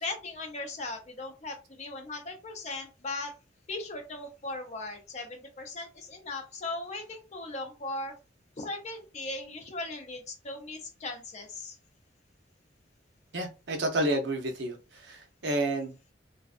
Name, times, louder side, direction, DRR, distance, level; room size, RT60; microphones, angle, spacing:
voice 1, 0.0-3.3 3.7-8.1 8.6-11.8, left 2 dB, 35° left, 5 dB, 0.5 m, -38 dB
voice 2, 13.3-14.8 15.1-16.1, right 1 dB, 70° right, 3 dB, 0.6 m, -30 dB
2.5 x 2.2 x 2.4 m, 0.31 s
head